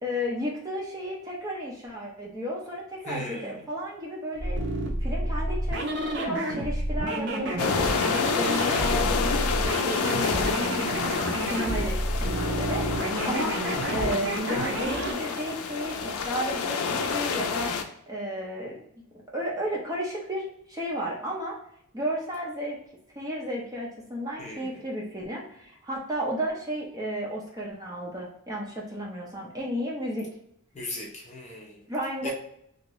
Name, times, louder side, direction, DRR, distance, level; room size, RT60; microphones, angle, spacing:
voice 1, 0.0-4.6 5.0-13.6 13.9-17.7 18.1-18.8 19.3-21.6 21.9-22.8 23.2-30.3 31.9-32.3, equal, 15° right, -3 dB, 0.6 m, -33 dB
voice 2, 3.1-3.6 8.7-9.1 24.4-24.8 30.7-31.8 32.2-32.3, left 1 dB, 30° left, -2 dB, 0.6 m, -37 dB
sound 1, 4.3-15.2, right 1 dB, 55° right, 0.6 m, -30 dB
sound 2, 7.6-17.8, left 5 dB, 80° left, 0.4 m, -29 dB
2.8 x 2.5 x 3.0 m, 0.71 s
head